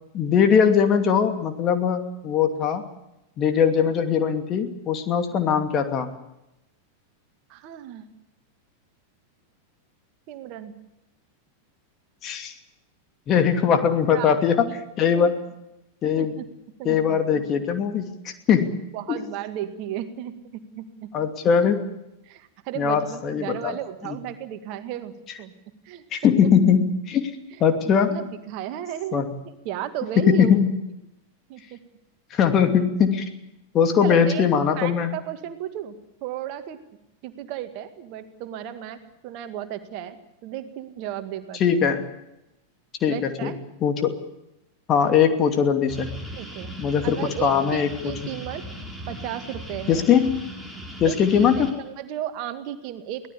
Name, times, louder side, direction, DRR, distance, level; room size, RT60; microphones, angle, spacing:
voice 1, 0.1-2.9 3.4-6.1 12.2-12.5 13.3-14.7 15.0-15.3 16.0-16.3 16.8-19.2 21.1-22.0 22.8-23.8 24.0-24.2 26.1-27.3 27.6-28.2 29.1-29.3 30.2-30.7 32.3-33.3 33.7-35.1 41.6-42.0 43.0-43.5 43.8-44.2 44.9-46.1 46.8-48.1 49.9-50.5 51.0-51.7, left 7 dB, 30° left, 6 dB, 2.6 m, -21 dB
voice 2, 7.5-8.1 10.3-10.7 14.1-14.4 14.7-14.8 15.2-15.3 16.2-16.4 16.8-17.4 18.9-21.1 22.2-25.1 25.4-25.5 25.8-26.0 26.4-26.5 27.5-27.6 28.0-29.2 29.6-30.6 31.5-31.8 34.0-36.8 37.2-41.8 43.1-43.6 46.3-46.8 47.0-48.7 49.1-50.1 51.0-53.3, right 11 dB, 45° right, 9 dB, 2.0 m, -34 dB
sound 1, 45.9-51.7, equal, 5° left, 5.2 m, -38 dB
23.5 x 17.5 x 8.5 m, 0.90 s
figure-of-eight pair, 90°, 0 cm